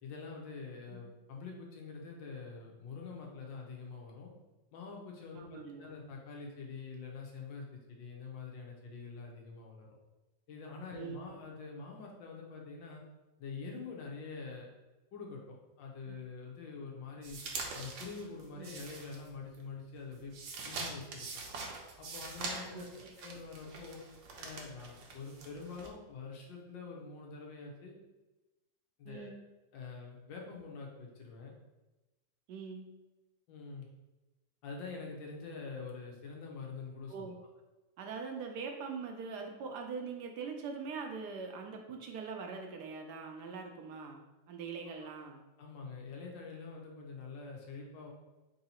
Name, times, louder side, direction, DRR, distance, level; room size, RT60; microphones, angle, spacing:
voice 1, 0.0-4.3 4.7-9.9 10.5-13.0 13.4-14.7 15.1-17.4 17.7-20.3 20.6-21.3 22.0-22.9 23.1-24.0 24.4-28.0 29.0-29.3 29.7-31.5 33.5-33.9 34.6-37.3 45.0-45.1 45.6-48.1, left 4 dB, 85° left, -1 dB, 1.6 m, -45 dB
voice 2, 5.3-5.9 10.9-11.2 16.1-16.2 18.6-18.7 22.6-22.8 29.0-29.4 32.5-32.9 37.1-37.4 38.0-44.2 44.5-45.4, right 5 dB, 70° right, 2 dB, 1.1 m, -42 dB
sound 1, 17.2-19.6 19.9-25.9, right 3 dB, 85° right, 1.4 m, -44 dB
3.8 x 2.7 x 4.2 m, 1.1 s
omnidirectional pair, 2.0 m